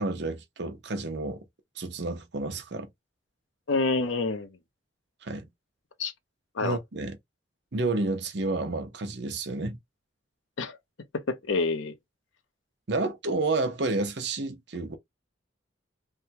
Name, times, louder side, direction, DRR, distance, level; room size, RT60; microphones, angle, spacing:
voice 1, 0.0-1.4 1.8-2.9 5.2-5.5 6.6-7.2 7.7-9.8 12.9-15.0, right 2 dB, 60° right, 0.8 m, -30 dB
voice 2, 3.7-4.5 6.0-6.1 6.6-6.8 10.6-10.8 11.3-11.9, left 3 dB, 85° left, 0.8 m, -27 dB
3.4 x 2.2 x 2.8 m
head